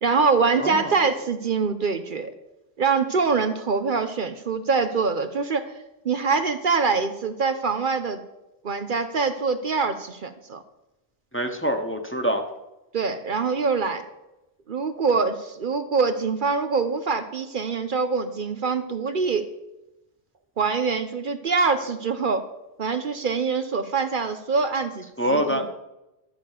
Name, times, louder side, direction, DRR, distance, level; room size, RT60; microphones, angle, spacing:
voice 1, 0.0-2.3 2.8-5.6 6.0-8.2 8.6-10.6 12.9-14.0 14.7-19.5 20.6-22.4 22.8-25.7, right 4 dB, 55° right, 8 dB, 0.9 m, -24 dB
voice 2, 11.3-12.4 25.2-25.6, equal, 10° left, 4 dB, 1.1 m, -24 dB
12.5 x 7.0 x 6.6 m, 0.96 s
omnidirectional pair, 1.0 m